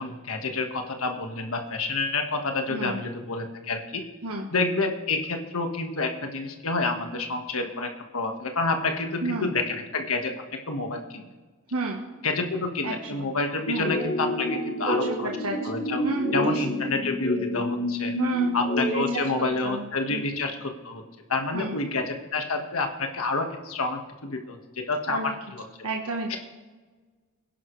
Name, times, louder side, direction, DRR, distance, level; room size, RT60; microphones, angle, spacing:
voice 1, 0.0-4.0 4.5-10.3 10.7-11.3 12.2-15.3 15.6-16.1 16.3-18.1 18.5-21.0 21.3-25.6 26.3-26.4, left 3 dB, 70° left, 4 dB, 1.6 m, -29 dB
voice 2, 11.7-12.0 12.8-13.3 13.7-13.9 14.9-15.6 16.0-16.6 18.2-18.5 18.8-19.2 19.6-20.2 21.5-21.8 25.1-25.3 25.8-26.4, right 2 dB, 80° right, 0 dB, 1.4 m, -31 dB
sound 1, 13.8-19.1, left 1 dB, 40° left, 3.1 m, -28 dB
21.5 x 11.0 x 3.3 m, 1.3 s
head